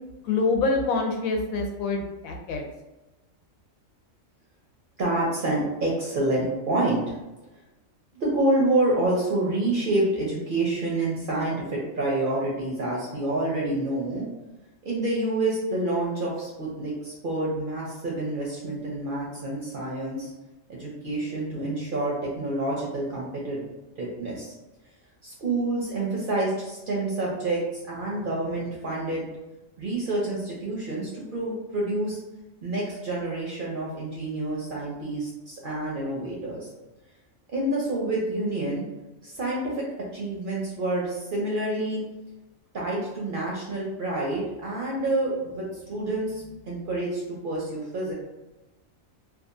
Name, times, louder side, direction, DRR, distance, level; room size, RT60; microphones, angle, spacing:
voice 1, 0.2-2.6, left 3 dB, 90° left, 2 dB, 1.0 m, -26 dB
voice 2, 5.0-7.2 8.1-14.3 14.8-20.3 20.7-23.6 24.0-24.5 25.2-27.6 27.9-29.3 29.8-32.2 32.6-36.7 37.5-38.8 39.2-39.8 40.1-42.0 42.7-48.1, right 2 dB, 55° right, -4 dB, 0.6 m, -28 dB
2.8 x 2.3 x 2.5 m, 1.1 s
omnidirectional pair, 1.4 m